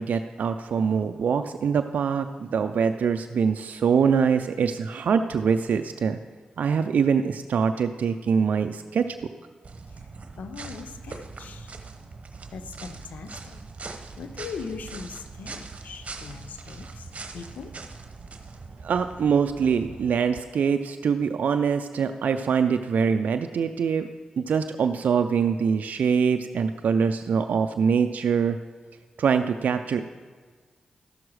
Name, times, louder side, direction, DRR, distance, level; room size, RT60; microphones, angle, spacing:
voice 1, 0.0-6.2 6.6-9.1 18.8-24.1 24.4-28.6 29.2-30.0, right 6 dB, 75° right, 7 dB, 0.4 m, -24 dB
sound 1, 9.6-20.2, right 4 dB, 55° right, 0.9 m, -41 dB
voice 2, 9.9-11.7 12.5-13.6 13.9-17.7, left 5 dB, 80° left, 9 dB, 0.7 m, -40 dB
13.5 x 6.1 x 4.7 m, 1.5 s
supercardioid pair, 45°, 3 cm